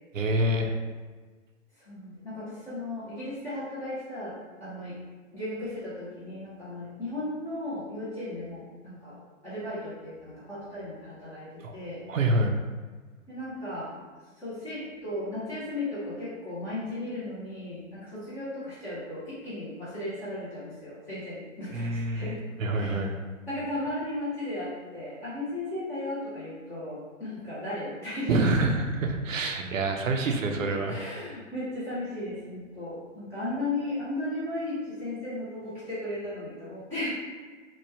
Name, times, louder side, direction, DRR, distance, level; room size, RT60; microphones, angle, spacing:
voice 1, 0.1-0.7 11.6-11.7 12.1-12.5 21.7-23.1 28.3-31.0, right 2 dB, 85° right, 4 dB, 0.5 m, -26 dB
voice 2, 1.8-4.3 4.6-5.0 5.3-12.0 13.3-13.9 14.4-22.4 22.7-23.0 23.5-28.3 30.5-37.1, left 1 dB, 10° left, -11 dB, 0.4 m, -35 dB
3.0 x 2.1 x 3.3 m, 1.4 s
figure-of-eight pair, 120°, 38 cm